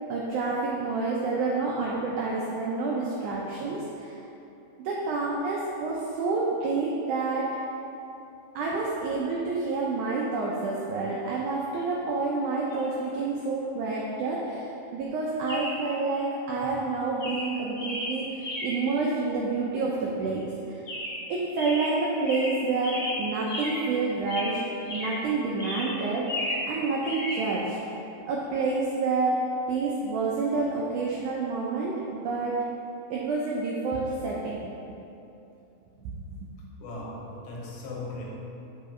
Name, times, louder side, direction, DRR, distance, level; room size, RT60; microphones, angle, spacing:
voice 1, 0.1-4.2 4.8-7.5 8.5-20.8 21.3-24.6 24.9-26.2 26.7-27.8 28.2-29.4 29.7-32.6 33.1-34.6 36.0-36.4, right 3 dB, 85° right, -3 dB, 1.7 m, -28 dB
Chirp tweet, 12.7-12.8 15.5-15.9 16.6-16.8 17.2-18.9 20.9-21.3 21.6-23.9 24.2-25.3 25.6-26.7 27.0-27.4, left 1 dB, 60° left, 0.8 m, -34 dB
voice 2, 36.8-38.3, left 2 dB, 75° left, -3 dB, 3.0 m, -38 dB
7.3 x 5.1 x 4.4 m, 2.8 s
omnidirectional pair, 4.4 m